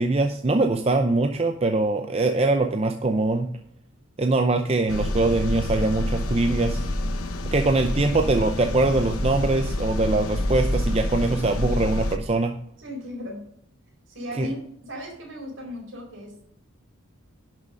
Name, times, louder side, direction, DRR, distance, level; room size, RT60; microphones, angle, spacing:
voice 1, 0.0-3.5 4.2-6.9 7.5-12.5 14.4-14.5, right 2 dB, 30° right, 6 dB, 0.5 m, -22 dB
sound 1, 4.9-12.2, left 1 dB, 85° left, 1.1 m, -27 dB
voice 2, 12.8-13.5 14.1-16.4, equal, 60° right, 0 dB, 4.6 m, -36 dB
11.0 x 6.2 x 5.2 m, 0.73 s
head